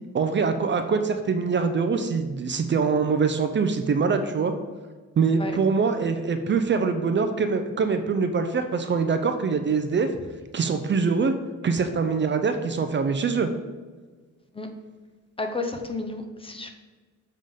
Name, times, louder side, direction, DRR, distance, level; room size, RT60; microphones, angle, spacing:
voice 1, 0.1-4.5 5.2-10.1 10.5-11.3 11.6-13.5, right 5 dB, 35° right, 7 dB, 0.6 m, -24 dB
voice 2, 15.4-16.7, left 3 dB, 15° left, 5 dB, 0.7 m, -32 dB
7.5 x 3.8 x 5.2 m, 1.4 s
cardioid pair, 110°, 31 cm